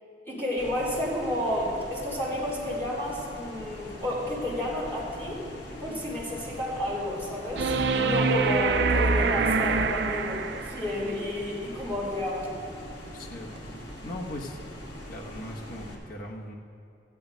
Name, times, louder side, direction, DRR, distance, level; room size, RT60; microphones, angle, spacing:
voice 1, 0.3-5.5 5.8-12.5, left 1 dB, 15° left, -7 dB, 3.6 m, -31 dB
sound 1, 0.6-16.0, left 1 dB, 75° left, 2.0 m, -42 dB
sound 2, 7.6-10.9 13.6-13.7, right 4 dB, 70° right, 0.6 m, -25 dB
voice 2, 13.1-14.6 15.1-16.5, left 1 dB, 55° left, 0 dB, 1.2 m, -39 dB
14.5 x 9.5 x 5.2 m, 2.5 s
head